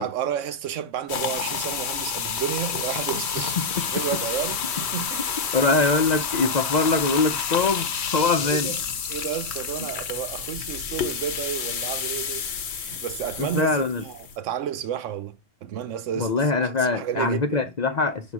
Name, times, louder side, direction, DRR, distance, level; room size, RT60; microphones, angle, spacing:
voice 1, 0.0-5.2 5.5-5.7 8.4-8.8 9.1-17.7, right 10 dB, 85° right, 1.0 m, -32 dB
sound 1, 1.1-14.4, left 7 dB, 65° left, 1.1 m, -29 dB
voice 2, 5.5-8.7 13.4-14.0 16.2-18.3, left 3 dB, 50° left, 0.6 m, -23 dB
5.8 x 3.8 x 5.9 m
omnidirectional pair, 1.3 m